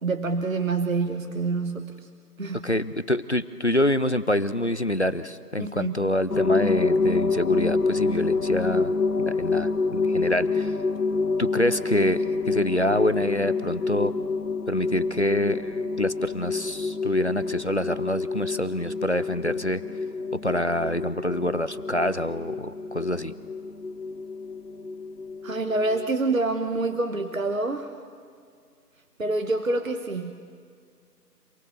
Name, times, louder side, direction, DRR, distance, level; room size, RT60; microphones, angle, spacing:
voice 1, 0.0-2.1 2.4-2.7 5.6-5.9 25.4-27.9 29.2-30.3, right 3 dB, 55° right, 8 dB, 1.1 m, -27 dB
voice 2, 2.6-8.9 9.2-10.7 11.4-14.1 14.7-19.8 20.4-23.3, left 1 dB, 45° left, 15 dB, 0.6 m, -26 dB
sound 1, 6.3-26.1, left 4 dB, 65° left, 0.9 m, -27 dB
27.5 x 18.0 x 7.2 m, 2.1 s
figure-of-eight pair, 160°, 49 cm